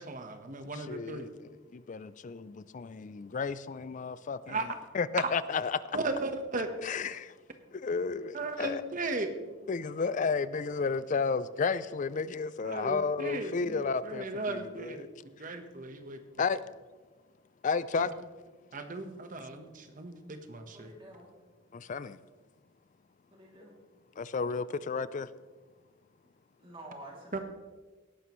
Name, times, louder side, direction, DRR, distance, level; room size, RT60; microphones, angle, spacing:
voice 1, 0.0-1.3 4.5-4.7 5.9-6.7 8.3-9.3 12.6-15.1 15.4-16.2 18.7-20.9 27.3-27.4, right 2 dB, 40° right, 7 dB, 1.2 m, -36 dB
voice 2, 0.7-4.7 4.9-6.0 6.8-7.3 7.7-8.8 9.7-15.1 16.4-16.6 17.6-18.1 21.7-22.2 24.2-25.3, left 5 dB, 40° left, 16 dB, 0.4 m, -32 dB
voice 3, 20.7-21.3 23.3-23.7 26.6-27.4, right 1 dB, 25° right, -2 dB, 2.7 m, -49 dB
17.5 x 11.0 x 3.1 m, 1.3 s
head